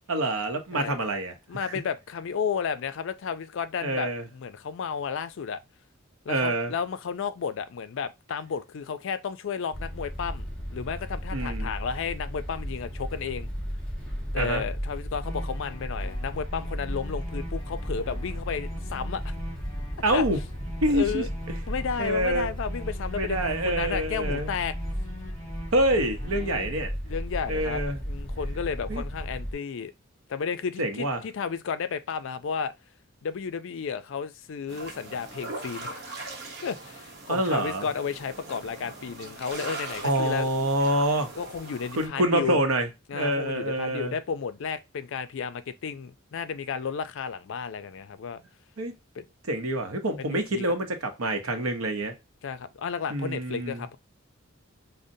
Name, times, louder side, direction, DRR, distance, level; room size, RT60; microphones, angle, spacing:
voice 1, 0.1-1.3 1.6-1.7 3.8-4.2 6.3-6.7 11.3-11.7 14.4-14.6 20.0-20.4 20.8-21.2 22.0-22.5 23.1-24.5 25.7-26.9 27.5-28.0 28.9-29.0 30.8-31.2 37.3-37.8 40.0-41.3 42.0-44.1 48.8-48.9 49.5-52.1 53.1-53.8, right 1 dB, 90° right, 0.7 m, -26 dB
voice 2, 1.5-5.6 6.3-13.5 14.3-19.3 20.1-20.2 20.9-21.3 21.7-24.7 26.3-26.7 27.1-29.9 30.3-32.7 33.2-36.2 36.6-40.5 41.4-42.6 43.1-48.4 49.2-49.3 50.2-50.6 52.4-54.0, left 6 dB, 65° left, 0.4 m, -33 dB
sound 1, 9.7-29.5, equal, 5° left, 1.6 m, -34 dB
sound 2, 15.2-26.6, left 1 dB, 20° left, 1.9 m, -45 dB
sound 3, 34.7-42.1, right 2 dB, 55° right, 0.9 m, -41 dB
5.1 x 2.1 x 2.6 m
head